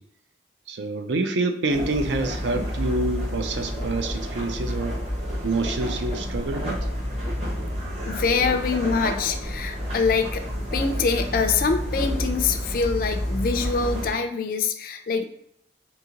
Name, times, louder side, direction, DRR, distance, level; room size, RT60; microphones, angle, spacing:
voice 1, 0.7-5.0 5.4-6.8, right 2 dB, 75° right, 7 dB, 0.4 m, -27 dB
sound 1, 1.7-14.1, equal, 35° right, 1.1 m, -29 dB
voice 2, 8.1-10.5 10.7-15.3, left 5 dB, 50° left, 5 dB, 0.3 m, -24 dB
3.8 x 2.7 x 2.8 m, 0.73 s
head